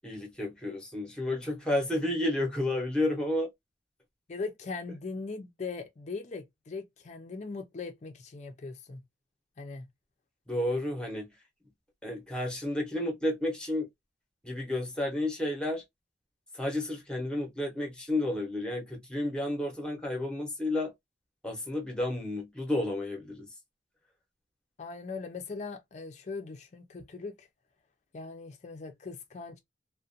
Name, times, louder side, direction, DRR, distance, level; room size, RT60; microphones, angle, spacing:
voice 1, 0.0-3.5 10.5-11.3 12.0-13.9 14.4-15.8 16.5-20.9 21.4-23.5, left 1 dB, 5° left, 0.7 m, -31 dB
voice 2, 4.3-9.0 9.6-9.9 24.8-27.5 28.1-29.6, left 4 dB, 40° left, 0.4 m, -40 dB
2.5 x 2.1 x 2.5 m
head